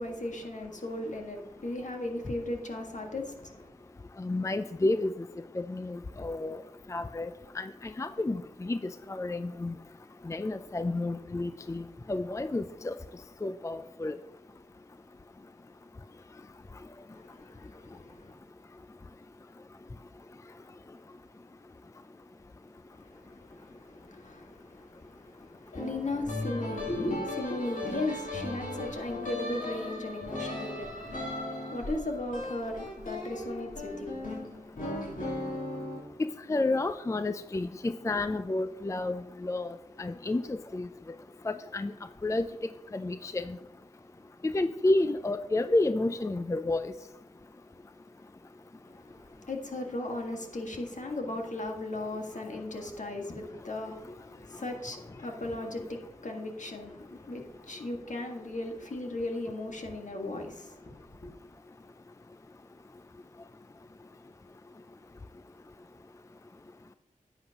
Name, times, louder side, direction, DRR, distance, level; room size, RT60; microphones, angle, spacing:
voice 1, 0.0-3.7 17.1-18.4 22.9-34.3 48.9-61.3, left 2 dB, 60° left, 1.7 m, -37 dB
voice 2, 4.2-5.1 5.6-6.6 6.9-7.3 7.6-7.7 8.0-8.8 9.1-9.7 10.3-11.8 12.1-12.9 13.4-14.2 36.2-39.7 40.0-40.9 41.4-41.9 42.2-42.5 42.9-43.6 44.4-46.9, left 2 dB, 20° left, 0.4 m, -30 dB
sound 1, 25.7-36.0, left 1 dB, 80° left, 3.2 m, -37 dB
11.0 x 8.0 x 2.9 m
cardioid pair, 40°, 14 cm